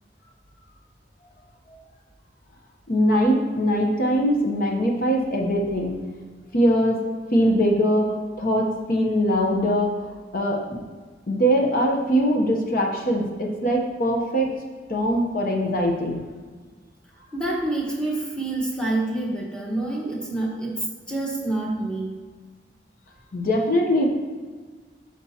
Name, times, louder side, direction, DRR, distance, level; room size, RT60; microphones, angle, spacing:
voice 1, 2.9-6.0 6.5-7.0 7.3-9.9 10.3-10.8 11.3-14.5 14.9-16.2 23.3-24.1, equal, 50° left, 0 dB, 0.8 m, -22 dB
voice 2, 17.3-22.1, right 2 dB, 5° left, -3 dB, 1.2 m, -27 dB
8.6 x 6.0 x 2.8 m, 1.4 s
head